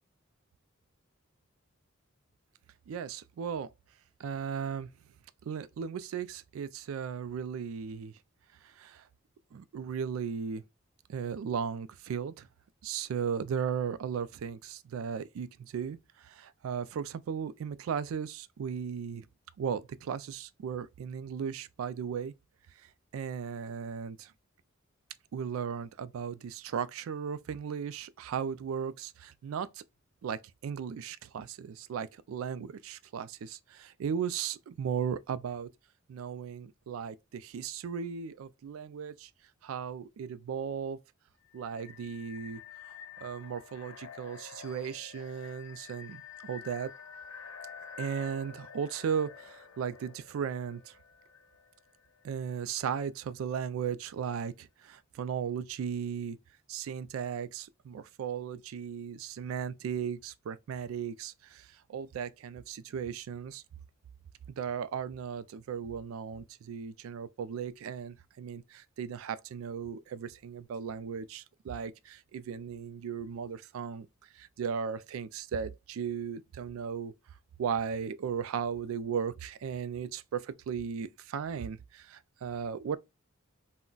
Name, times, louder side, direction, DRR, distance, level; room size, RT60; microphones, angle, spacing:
voice 1, 2.9-3.7 4.2-4.9 5.5-8.1 8.6-9.0 9.5-10.6 11.1-12.5 12.8-19.2 19.6-22.3 23.1-24.3 25.3-29.8 30.2-35.7 36.1-39.3 39.6-41.0 41.5-42.6 43.2-46.9 48.0-50.9 52.2-56.4 56.7-63.6 64.6-74.1 74.3-77.1 77.6-83.0, right 7 dB, 80° right, 0.3 m, -36 dB
sound 1, 41.4-52.2, left 7 dB, 85° left, 0.7 m, -49 dB
3.8 x 2.1 x 2.2 m
head